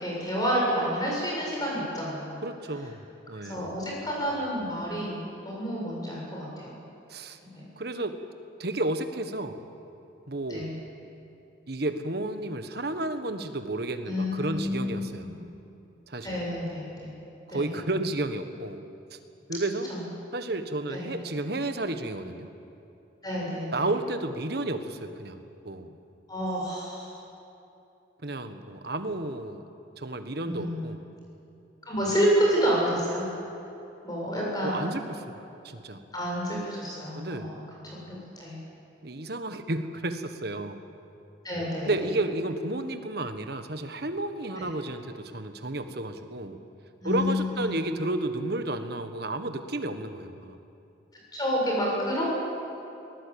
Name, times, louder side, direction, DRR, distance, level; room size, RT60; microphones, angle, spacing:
voice 1, 0.0-2.4 3.4-6.8 7.5-7.6 10.5-10.7 14.1-15.3 16.2-17.1 17.5-17.7 19.9-20.0 20.9-21.1 23.2-23.9 26.3-27.2 30.4-30.9 31.8-33.2 34.0-35.0 36.1-38.6 41.4-41.9 44.6-44.7 47.0-47.8 51.3-52.4, equal, 20° left, -3 dB, 7.5 m, -29 dB
voice 2, 2.4-3.7 7.1-7.4 7.8-8.2 8.6-9.7 10.3-10.7 11.7-15.4 16.1-16.4 17.5-18.8 19.1-19.2 19.5-19.9 20.3-22.5 23.7-25.9 28.2-29.6 30.0-31.0 34.6-35.3 35.6-36.0 37.1-37.6 39.0-40.8 41.8-46.6 47.0-50.6, right 2 dB, 55° right, 8 dB, 1.4 m, -32 dB
23.0 x 18.5 x 8.7 m, 2.9 s
head